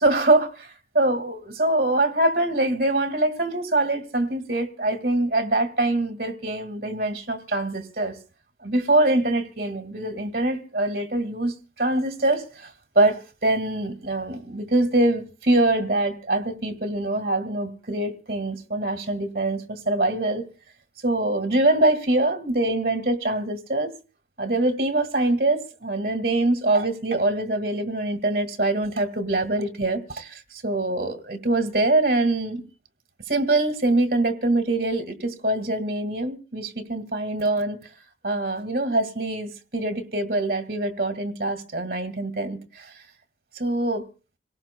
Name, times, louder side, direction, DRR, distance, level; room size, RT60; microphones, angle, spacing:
voice 1, 0.0-8.2 8.6-12.7 13.0-20.4 21.0-23.9 24.4-32.6 33.3-37.8 38.2-42.9 43.6-44.1, right 2 dB, 55° right, 1.9 m, -24 dB
27.0 x 17.5 x 2.2 m
head